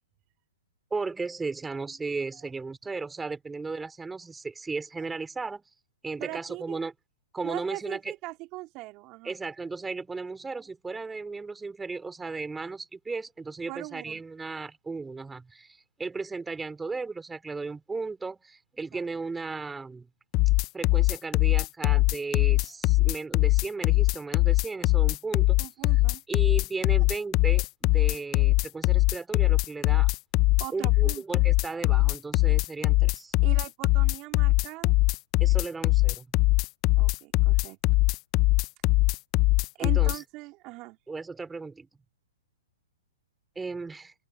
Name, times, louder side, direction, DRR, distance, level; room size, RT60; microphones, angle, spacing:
voice 1, 0.9-5.6 6.0-6.9 7.3-8.1 9.2-20.1 20.7-25.6 26.3-30.1 30.7-33.3 35.4-36.3 39.8-40.2 41.1-41.9 43.6-44.1, right 4 dB, 10° right, 4.0 m, -35 dB
voice 2, 6.2-6.8 7.4-9.4 13.7-14.2 18.9-19.1 25.6-26.2 30.6-31.4 33.4-34.9 37.0-37.8 39.8-41.0, right 21 dB, 35° right, 2.8 m, -40 dB
sound 1, 20.3-40.2, left 21 dB, 35° left, 0.6 m, -22 dB
open air
hypercardioid pair, 135°, 0 cm